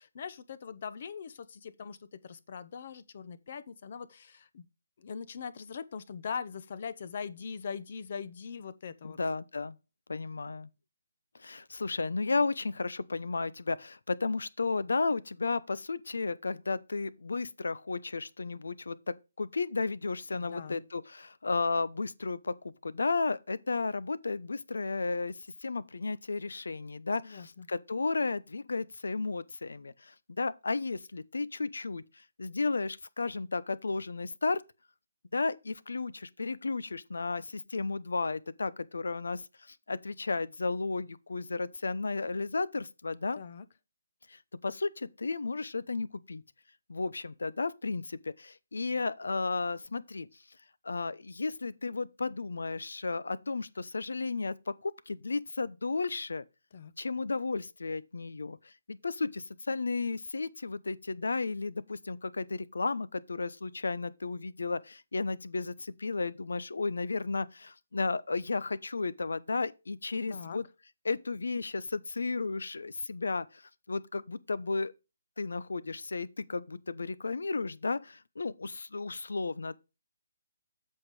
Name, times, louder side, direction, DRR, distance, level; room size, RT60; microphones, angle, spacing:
voice 1, 0.0-4.7 5.0-9.2 20.3-20.8 27.2-27.7 43.4-43.6 56.7-56.9 70.3-70.6, left 6 dB, 40° left, 0.8 m, -41 dB
voice 2, 9.0-9.7 10.1-10.7 11.4-22.5 22.8-25.3 25.6-34.6 35.3-39.4 39.7-43.4 44.3-46.4 46.9-50.3 50.8-56.4 57.0-70.6 71.0-73.6 73.9-74.9 75.4-79.7, left 3 dB, 80° left, 0.8 m, -33 dB
8.0 x 5.8 x 4.9 m
hypercardioid pair, 170°, 0 cm